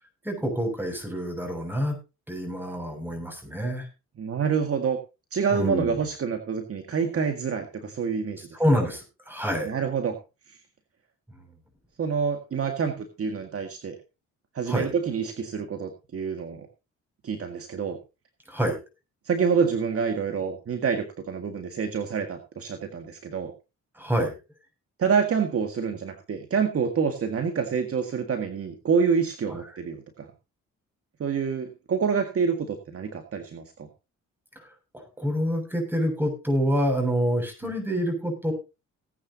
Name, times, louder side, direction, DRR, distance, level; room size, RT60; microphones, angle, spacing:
voice 1, 0.2-2.0 2.3-3.9 5.5-6.0 8.5-9.7 14.7-14.9 18.5-18.8 23.9-24.4 34.6-34.7 34.9-38.5, equal, 5° right, 4 dB, 7.0 m, -27 dB
voice 2, 4.2-5.0 5.3-8.5 9.6-10.2 12.0-14.0 14.5-16.7 17.2-18.0 19.3-23.5 25.0-30.3 31.2-33.9, right 6 dB, 50° right, 5 dB, 1.9 m, -27 dB
18.5 x 9.6 x 2.9 m, 0.28 s
cardioid pair, 90°, 30 cm